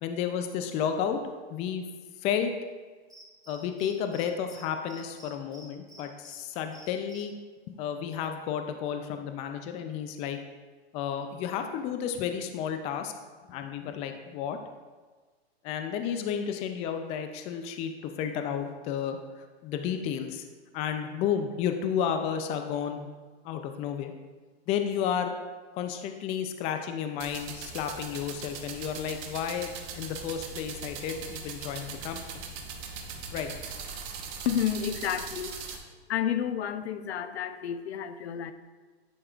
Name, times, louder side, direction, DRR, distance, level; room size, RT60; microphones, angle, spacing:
voice 1, 0.0-1.2 1.5-1.8 2.2-2.5 3.5-7.3 7.7-10.4 10.9-13.1 13.5-14.6 15.6-19.2 19.6-20.4 20.7-23.1 23.4-24.1 24.7-25.4 25.8-32.4 33.3-33.5, left 8 dB, 20° left, 6 dB, 0.3 m, -32 dB
Cricket, 3.1-4.2 4.5-4.6 4.9-6.3 6.7-7.2, right 1 dB, ahead, 2.1 m, -51 dB
sound 1, 27.2-35.8, right 5 dB, 40° right, 1.0 m, -40 dB
voice 2, 34.5-35.5 36.1-38.5, left 9 dB, 80° left, 10 dB, 0.6 m, -30 dB
9.9 x 5.4 x 2.4 m, 1.4 s
hypercardioid pair, 130°, 32 cm